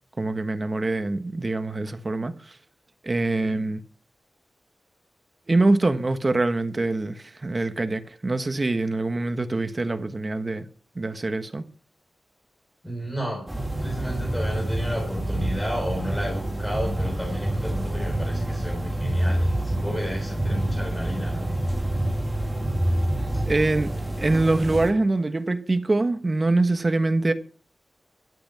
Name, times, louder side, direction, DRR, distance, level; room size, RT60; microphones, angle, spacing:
voice 1, 0.2-2.6 3.0-3.8 5.5-10.7 10.9-11.6 23.5-27.3, right 2 dB, 30° right, 1.3 m, -24 dB
voice 2, 12.8-13.5 13.8-21.5, equal, 5° left, 4.3 m, -32 dB
sound 1, 13.5-24.9, right 1 dB, 10° right, 2.6 m, -27 dB
12.5 x 8.1 x 7.5 m
wide cardioid pair, 130°, 0 cm